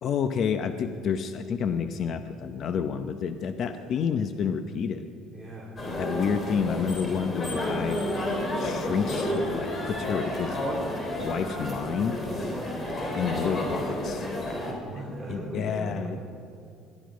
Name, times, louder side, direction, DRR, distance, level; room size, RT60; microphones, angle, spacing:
voice 1, 0.0-5.0 6.0-8.0 8.5-10.6 11.2-12.2 13.1-14.3 15.3-16.2, left 7 dB, 45° left, 8 dB, 0.8 m, -29 dB
voice 2, 5.3-5.8 14.7-16.2, right 1 dB, ahead, -6 dB, 3.1 m, -38 dB
sound 1, 5.8-14.7, left 1 dB, 25° left, 3.2 m, -31 dB
21.0 x 12.5 x 5.1 m, 2.5 s
cardioid pair, 135°, 0 cm